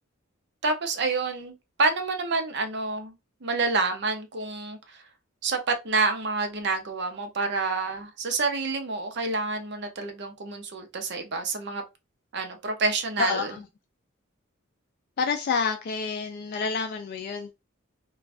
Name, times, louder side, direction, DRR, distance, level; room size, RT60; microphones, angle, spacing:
voice 1, 0.6-3.1 3.4-5.0 5.4-11.8 12.3-13.5, right 3 dB, 55° right, 0.6 m, -28 dB
voice 2, 13.2-13.6 15.2-17.5, left 5 dB, 45° left, 0.3 m, -28 dB
2.5 x 2.3 x 3.3 m
head